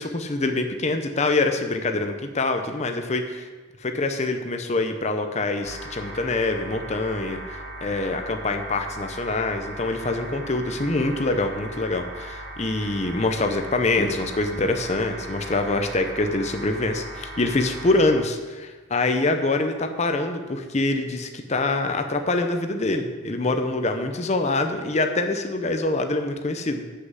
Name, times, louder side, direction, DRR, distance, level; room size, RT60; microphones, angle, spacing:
voice 1, 0.0-3.5 3.8-26.8, left 2 dB, 35° left, 6 dB, 0.7 m, -25 dB
sound 1, 5.6-18.2, right 1 dB, 75° right, 2.7 m, -38 dB
7.7 x 6.5 x 7.6 m, 1.3 s
head